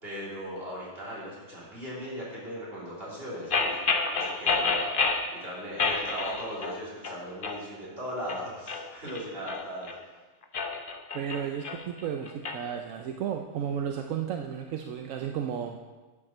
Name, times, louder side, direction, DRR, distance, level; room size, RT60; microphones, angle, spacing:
voice 1, 0.0-3.8 4.1-9.9, equal, 50° right, -6 dB, 3.7 m, -38 dB
sound 1, 3.5-5.3 5.8-6.8 7.0-7.6 8.1-10.0 10.4-12.6, left 4 dB, 45° left, 0.9 m, -29 dB
voice 2, 11.1-15.8, right 8 dB, 85° right, 4 dB, 1.1 m, -33 dB
11.0 x 7.4 x 6.0 m, 1.3 s
omnidirectional pair, 1.3 m